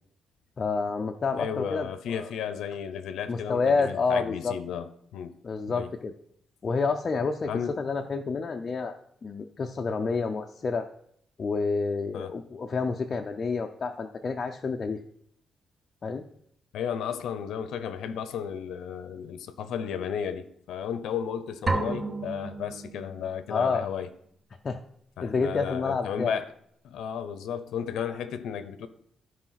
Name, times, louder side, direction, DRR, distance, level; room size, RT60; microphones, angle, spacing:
voice 1, 0.6-2.3 3.3-4.5 5.4-6.1 6.6-7.5 7.8-8.9 9.2-10.9 11.4-15.0 16.0-16.3 23.5-23.8 24.6-24.8 25.2-26.4, left 4 dB, 30° left, 0.5 m, -29 dB
voice 2, 1.4-5.4 5.7-5.9 7.5-7.8 12.1-12.3 16.7-24.1 25.2-26.5 26.8-28.9, left 8 dB, 90° left, 0.8 m, -34 dB
sound 1, 21.7-23.5, right 3 dB, 25° right, 0.8 m, -31 dB
13.0 x 4.9 x 5.8 m
cardioid pair, 180°, 0 cm